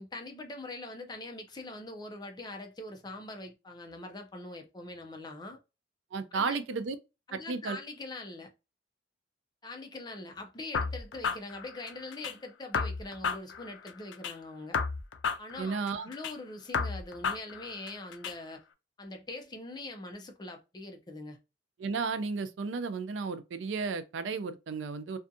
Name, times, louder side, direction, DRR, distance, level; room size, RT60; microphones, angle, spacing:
voice 1, 0.0-5.6 6.3-6.6 7.3-8.5 9.6-14.8 15.4-18.6 19.0-21.4, left 2 dB, 20° left, 0.4 m, -43 dB
voice 2, 6.1-7.0 7.3-7.8 15.6-16.1 21.8-25.2, right 4 dB, 85° right, 0.4 m, -33 dB
sound 1, 10.7-12.3 12.7-14.3 14.7-16.3 16.7-18.3, left 5 dB, 80° left, 0.4 m, -33 dB
2.6 x 2.3 x 2.6 m
head